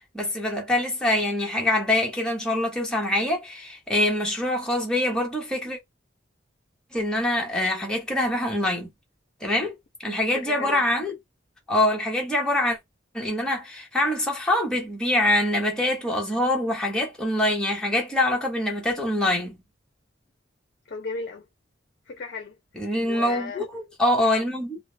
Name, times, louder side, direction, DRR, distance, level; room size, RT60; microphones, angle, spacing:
voice 1, 0.1-5.8 6.9-8.9 9.4-9.7 10.0-11.1 11.7-12.8 13.1-19.6 22.8-24.8, left 1 dB, 5° left, 0.9 m, -24 dB
voice 2, 10.0-10.8 20.9-21.4 22.1-22.6 23.0-23.7, left 4 dB, 55° left, 0.5 m, -35 dB
2.3 x 2.0 x 3.1 m
head